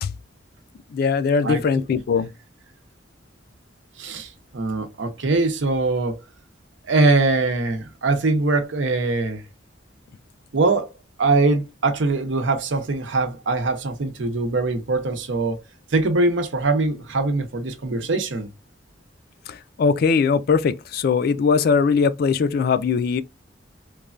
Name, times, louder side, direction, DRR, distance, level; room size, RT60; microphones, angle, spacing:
voice 1, 0.9-2.3 19.5-23.2, left 5 dB, 55° left, 0.3 m, -20 dB
voice 2, 4.0-6.2 6.9-9.4 10.5-10.9 11.2-15.6 15.9-18.5, right 3 dB, 85° right, 0.7 m, -22 dB
3.2 x 2.1 x 2.4 m
head